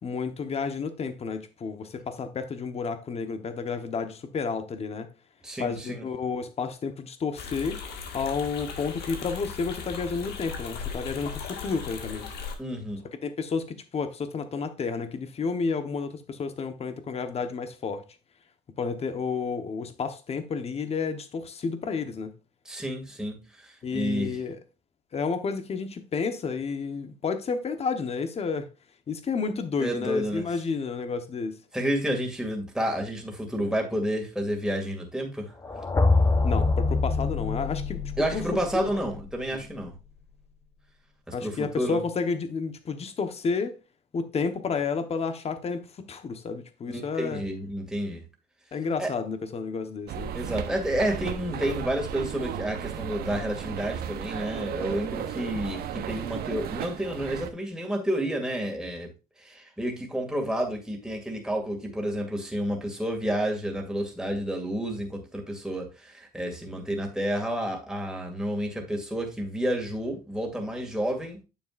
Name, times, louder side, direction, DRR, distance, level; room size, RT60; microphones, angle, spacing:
voice 1, 0.0-5.1 5.6-7.8 8.1-12.3 13.2-18.0 18.8-22.3 23.8-24.6 25.1-28.7 29.1-31.6 36.4-38.0 38.3-38.9 39.5-39.6 41.3-43.8 44.1-47.4 48.7-50.3, left 5 dB, 35° left, 1.1 m, -31 dB
voice 2, 5.4-6.0 12.6-13.1 22.7-24.4 29.8-30.5 31.7-35.5 38.2-40.0 41.3-42.0 46.9-48.2 49.0-49.1 50.3-59.1 59.4-71.4, equal, 5° right, 2.3 m, -30 dB
sound 1, 7.4-12.5, left 6 dB, 70° left, 1.8 m, -37 dB
sound 2, 35.6-39.6, left 3 dB, 20° left, 0.9 m, -25 dB
sound 3, 50.1-57.5, right 9 dB, 65° right, 1.0 m, -35 dB
9.1 x 7.0 x 2.5 m
cardioid pair, 110°, 17 cm